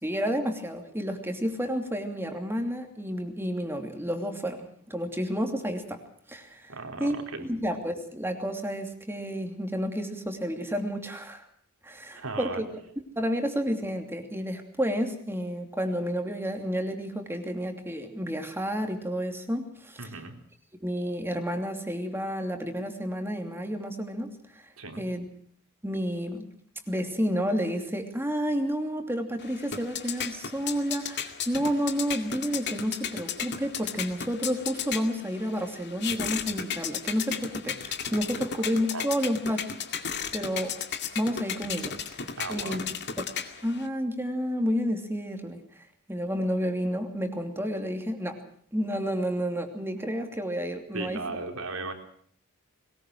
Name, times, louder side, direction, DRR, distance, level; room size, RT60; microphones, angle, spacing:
voice 1, 0.0-6.0 6.3-6.7 7.0-7.2 7.4-11.4 11.8-12.7 13.2-20.1 20.8-24.4 25.0-25.3 25.8-26.5 26.9-39.7 40.3-40.8 41.1-41.9 42.5-42.8 43.2-43.3 43.6-45.8 46.1-48.4 48.7-51.2, equal, 10° right, 5 dB, 2.9 m, -30 dB
voice 2, 6.7-7.5 12.2-12.6 20.0-20.4 24.8-25.0 38.9-39.1 42.4-42.8 50.9-51.9, right 3 dB, 80° right, 4 dB, 3.9 m, -36 dB
sound 1, 29.4-43.9, left 7 dB, 55° left, 2.3 m, -35 dB
21.5 x 20.0 x 6.3 m, 0.62 s
head